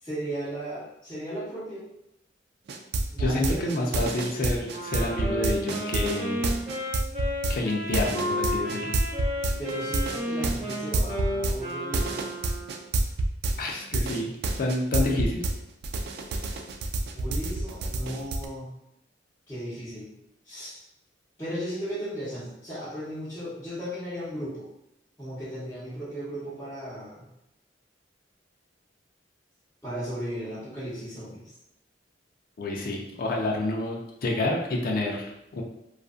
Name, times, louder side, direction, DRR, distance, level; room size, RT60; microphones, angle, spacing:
voice 1, 0.0-1.8 3.1-3.7 9.6-12.2 17.1-18.7 19.5-20.1 20.4-20.8 21.4-24.7 25.2-27.2 29.8-31.5, equal, 15° left, -13 dB, 0.8 m, -35 dB
sound 1, 2.7-15.5 15.8-18.5, right 2 dB, 60° right, 0.3 m, -28 dB
voice 2, 3.2-6.4 7.5-9.0 13.6-15.4 32.6-35.6, left 2 dB, 50° left, 0 dB, 0.4 m, -29 dB
Wind instrument woodwind instrument, 4.7-12.9, equal, 40° right, 1.0 m, -32 dB
2.5 x 2.4 x 2.4 m, 0.84 s
head